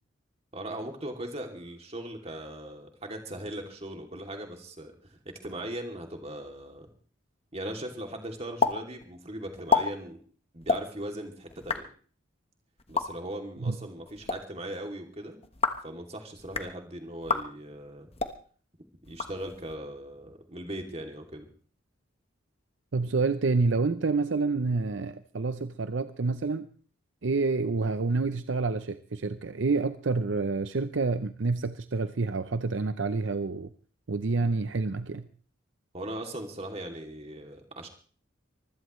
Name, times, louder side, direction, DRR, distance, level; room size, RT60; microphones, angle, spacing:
voice 1, 0.5-6.9 7.5-10.2 10.5-11.9 12.9-15.4 15.8-18.1 19.1-21.5 35.9-37.9, right 1 dB, 30° right, 2.7 m, -39 dB
sound 1, 8.6-8.7 9.0-9.1 9.5-9.8 10.6-10.8 11.5-11.8 12.8-13.0 14.1-14.4 15.4-15.9 16.4-16.7 17.2-17.4 18.1-18.3 19.0-19.7, left 5 dB, 30° left, 1.1 m, -28 dB
voice 2, 22.9-26.7 27.2-33.7 34.1-35.3, right 3 dB, 65° right, 0.6 m, -28 dB
24.5 x 16.0 x 3.2 m
head